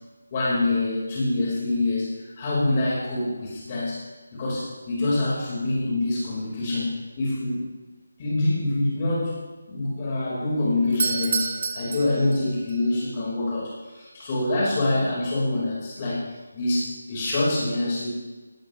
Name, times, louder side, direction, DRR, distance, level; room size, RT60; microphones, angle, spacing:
voice 1, 0.3-2.1 2.4-4.0 4.3-7.6 8.2-9.3 9.7-16.2 16.5-18.1, left 2 dB, 20° left, -6 dB, 5.6 m, -25 dB
Doorbell, 10.8-12.8, right 4 dB, 30° right, 0.9 m, -28 dB
19.5 x 18.0 x 3.6 m, 1.2 s
figure-of-eight pair, 180°, 0 cm